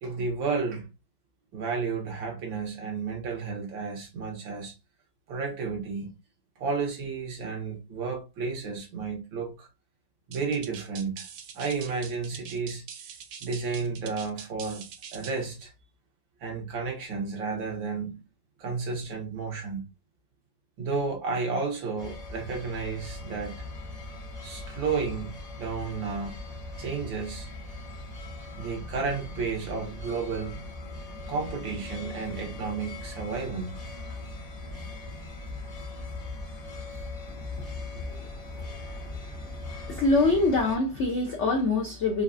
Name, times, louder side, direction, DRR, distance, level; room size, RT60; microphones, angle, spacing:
voice 1, 0.0-0.9 1.5-4.7 5.3-6.1 6.6-9.7 10.3-11.3 11.5-12.8 13.4-14.8 15.1-15.7 16.4-18.2 18.6-19.8 20.8-23.7 24.4-26.4 26.8-27.5 28.6-30.6 31.3-33.8, right 4 dB, 90° right, 2.0 m, -32 dB
sound 1, 10.3-15.5, right 7 dB, 65° right, 0.9 m, -44 dB
sound 2, 22.0-40.8, left 2 dB, 30° left, 0.8 m, -40 dB
voice 2, 38.6-39.2 39.4-39.5 39.9-42.2, left 3 dB, 80° left, 0.6 m, -26 dB
4.6 x 2.4 x 2.5 m
omnidirectional pair, 2.1 m